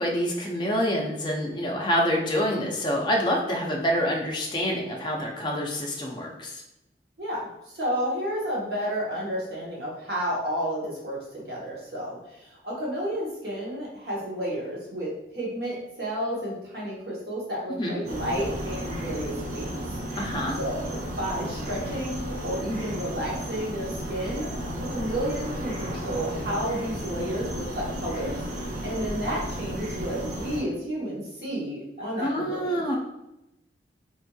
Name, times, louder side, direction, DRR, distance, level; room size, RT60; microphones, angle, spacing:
voice 1, 0.0-6.6 17.8-18.0 20.2-20.6 32.2-33.0, equal, 25° left, -1 dB, 0.5 m, -27 dB
voice 2, 7.2-7.5 7.7-19.8 20.6-24.5 24.9-32.8, equal, 60° right, -5 dB, 0.9 m, -31 dB
sound 1, 18.0-30.6, equal, 45° right, 0.5 m, -33 dB
2.9 x 2.5 x 2.2 m, 0.89 s
head